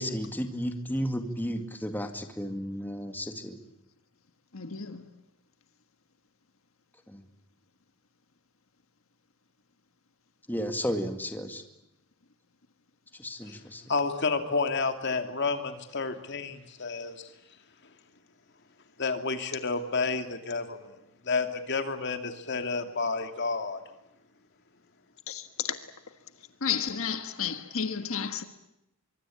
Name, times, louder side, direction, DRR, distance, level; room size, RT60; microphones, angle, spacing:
voice 1, 0.0-3.6 7.1-7.2 10.5-11.6 13.2-13.8, equal, 10° left, 2.0 m, -33 dB
voice 2, 4.5-5.0 25.3-25.8 26.6-28.4, left 7 dB, 75° left, 1.5 m, -32 dB
voice 3, 13.9-17.3 19.0-21.0 21.2-23.8, left 4 dB, 55° left, 2.7 m, -30 dB
24.5 x 23.5 x 8.7 m
head